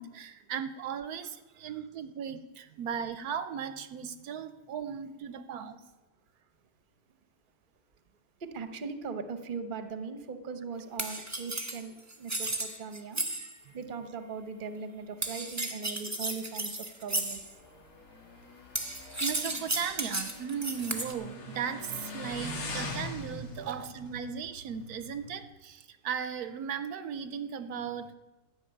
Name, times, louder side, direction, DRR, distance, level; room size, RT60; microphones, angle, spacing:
voice 1, 0.0-5.8 19.2-28.1, right 7 dB, 75° right, 11 dB, 1.1 m, -37 dB
voice 2, 8.4-13.2 13.7-17.4, right 5 dB, 40° right, 9 dB, 0.9 m, -39 dB
sound 1, 11.0-13.6 15.2-17.5 18.7-21.1, right 2 dB, 10° right, 1.0 m, -34 dB
Motorcycle, 17.2-25.4, left 2 dB, 65° left, 1.9 m, -43 dB
12.5 x 6.2 x 9.0 m, 1.1 s
omnidirectional pair, 1.7 m